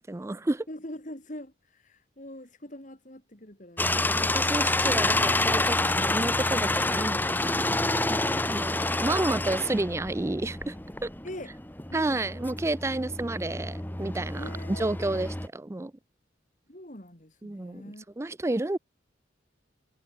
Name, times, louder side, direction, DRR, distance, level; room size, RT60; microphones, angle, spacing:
voice 1, 0.0-0.7 4.1-10.8 11.0-11.1 11.9-15.9 17.4-18.8, right 2 dB, 15° right, 0.4 m, -31 dB
voice 2, 0.7-4.1 4.5-4.7 11.2-11.5 11.9-12.5 14.3-14.9 16.7-18.0, left 1 dB, 40° left, 4.5 m, -43 dB
sound 1, 3.8-15.5, left 2 dB, 10° left, 1.4 m, -28 dB
head